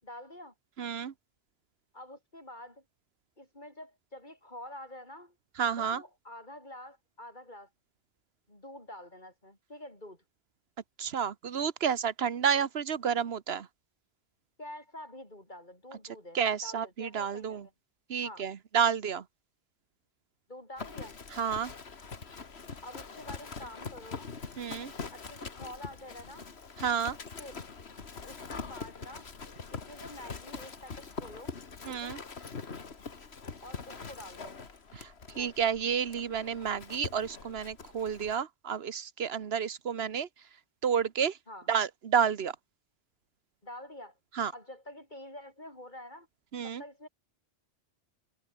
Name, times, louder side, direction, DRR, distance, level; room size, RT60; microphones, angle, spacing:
voice 1, 0.0-0.5 1.9-2.8 3.4-5.4 5.8-7.7 8.5-10.2 14.6-17.7 18.2-18.4 20.5-21.2 22.8-24.3 25.1-26.5 27.4-27.6 28.2-29.3 29.7-31.5 31.9-32.2 33.6-34.6 35.4-35.7 41.5-41.7 43.6-44.2 44.5-46.3 46.6-47.1, left 1 dB, 45° left, 7.5 m, -47 dB
voice 2, 0.8-1.1 5.6-6.0 11.0-13.7 16.3-17.7 18.1-19.2 21.3-21.7 24.6-24.9 26.8-27.2 31.8-32.2 34.9-35.1 35.4-40.3 40.8-41.4 41.7-42.6 44.3-44.5 46.5-46.8, right 7 dB, 70° right, 1.2 m, -30 dB
Livestock farm animals working animals, 20.8-38.4, left 5 dB, 70° left, 2.1 m, -43 dB
omnidirectional pair, 1.1 m